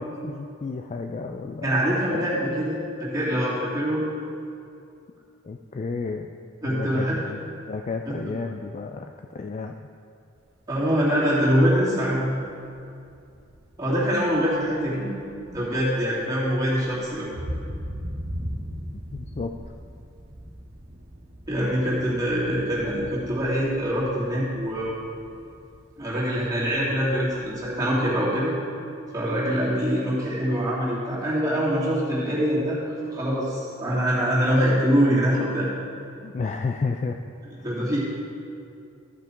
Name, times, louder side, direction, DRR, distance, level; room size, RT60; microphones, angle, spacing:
voice 1, 0.2-1.8 2.5-2.6 5.4-6.3 6.6-9.7 18.9-19.5 36.2-37.2 37.6-37.7, left 4 dB, 35° left, 4 dB, 0.3 m, -32 dB
voice 2, 1.6-4.0 6.6-7.2 10.7-12.3 13.8-15.1 15.5-17.3 21.5-24.9 26.0-28.5 29.1-32.8 33.1-35.7 37.6-38.0, equal, 20° right, -8 dB, 2.7 m, -24 dB
sound 1, 10.4-28.2, equal, 80° right, 1.6 m, -40 dB
14.0 x 5.9 x 4.5 m, 2.5 s
head